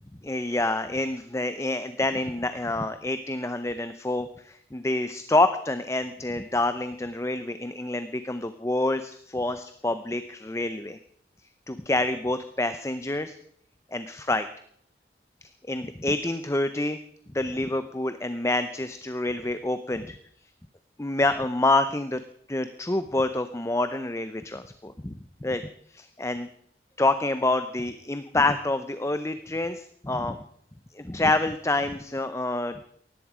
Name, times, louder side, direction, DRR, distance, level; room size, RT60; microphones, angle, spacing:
voice 1, 0.2-11.0 11.7-13.3 13.9-14.5 15.4-17.0 17.3-20.2 21.0-22.2 22.5-25.6 25.9-26.5 27.0-30.4 30.9-32.8, left 2 dB, 15° left, 11 dB, 0.7 m, -27 dB
18.5 x 14.5 x 5.0 m, 0.65 s
head